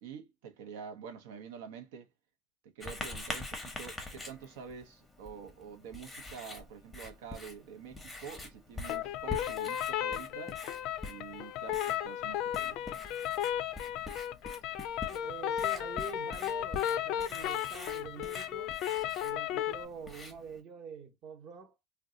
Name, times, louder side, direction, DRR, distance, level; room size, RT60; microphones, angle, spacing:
voice 1, 0.0-2.1 2.6-10.6 11.0-13.0, right 7 dB, 85° right, 0.7 m, -47 dB
Writing, 2.8-20.6, left 2 dB, 5° left, 0.7 m, -45 dB
sound 1, 8.8-19.8, left 11 dB, 50° left, 0.3 m, -34 dB
voice 2, 15.1-18.8 19.2-21.8, right 5 dB, 35° right, 0.8 m, -46 dB
2.6 x 2.2 x 3.6 m
cardioid pair, 155°, 0 cm